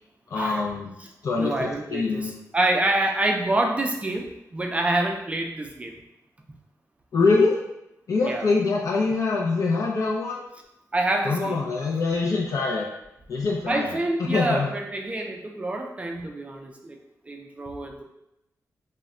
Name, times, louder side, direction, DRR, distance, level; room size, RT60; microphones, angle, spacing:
voice 1, 0.3-0.9 1.2-2.4 7.1-7.6 8.1-10.4 11.2-12.9 13.3-14.7, left 3 dB, 60° left, -2 dB, 0.4 m, -24 dB
voice 2, 1.4-5.9 8.2-8.5 10.9-11.6 13.7-17.0 17.3-18.0, right 2 dB, 20° right, 2 dB, 0.4 m, -27 dB
2.1 x 2.1 x 3.6 m, 0.86 s
wide cardioid pair, 110°, 6 cm